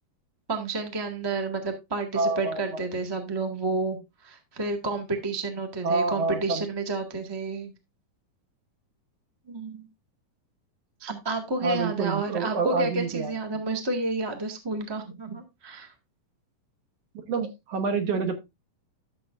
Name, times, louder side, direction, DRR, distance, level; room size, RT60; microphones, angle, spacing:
voice 1, 0.5-4.0 4.2-7.7 9.5-9.9 11.0-15.9, right 2 dB, 40° right, 4 dB, 0.3 m, -30 dB
voice 2, 2.1-2.6 5.8-6.6 11.6-13.3 17.3-18.3, right 4 dB, 60° right, 7 dB, 1.8 m, -27 dB
13.0 x 7.0 x 2.5 m, 0.22 s
omnidirectional pair, 4.0 m